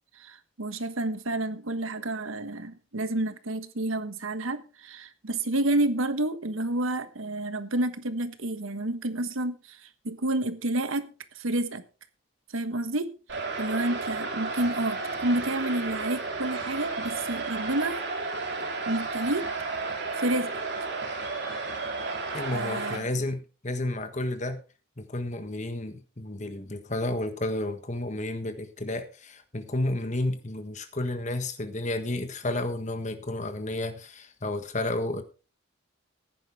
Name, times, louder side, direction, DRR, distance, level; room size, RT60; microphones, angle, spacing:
voice 1, 0.2-11.1 11.3-11.8 12.5-13.1 13.6-18.0 18.9-19.4 20.1-20.6 22.5-23.1, right 1 dB, 75° right, 1.3 m, -29 dB
sound 1, 13.3-23.0, right 3 dB, 55° right, 3.6 m, -32 dB
voice 2, 22.3-24.6 25.0-35.2, left 1 dB, 35° left, 1.4 m, -31 dB
15.0 x 10.5 x 3.6 m
head